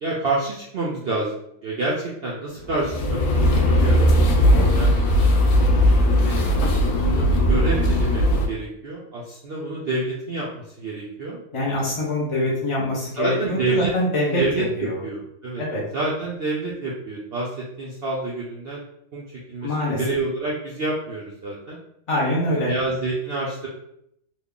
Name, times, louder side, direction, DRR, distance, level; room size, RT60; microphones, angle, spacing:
voice 1, 0.0-5.0 6.1-6.4 7.0-11.4 13.2-13.9 14.3-15.6 15.9-18.9 19.1-21.8 22.6-23.7, right 2 dB, 70° right, -5 dB, 0.5 m, -28 dB
sound 1, 2.7-8.5, equal, 70° left, 1.0 m, -18 dB
voice 2, 4.6-4.9 11.5-14.4 14.8-15.0 15.6-15.8 19.6-20.0 22.1-22.7, left 1 dB, 40° left, -6 dB, 0.4 m, -24 dB
3.0 x 2.2 x 3.6 m, 0.76 s
omnidirectional pair, 1.7 m